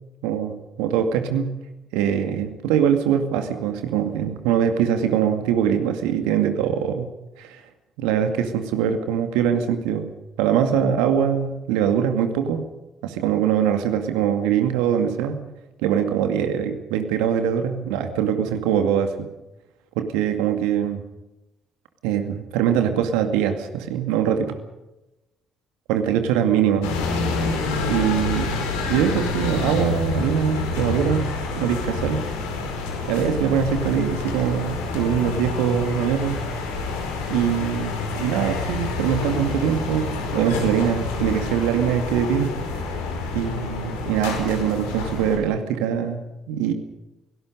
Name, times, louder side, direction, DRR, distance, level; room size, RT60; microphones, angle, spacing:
voice 1, 0.2-1.5 1.9-7.1 7.4-7.6 8.0-10.1 10.4-12.7 13.0-15.4 15.8-19.3 20.0-21.0 22.0-24.6 25.9-26.9 27.9-31.3 31.5-32.2 33.1-36.4 37.3-42.6 43.3-46.7, right 8 dB, 70° right, 7 dB, 2.2 m, -23 dB
sound 1, 26.8-45.4, left 3 dB, 75° left, 4.7 m, -27 dB
29.0 x 18.0 x 5.3 m, 0.97 s
figure-of-eight pair, 45°, 0 cm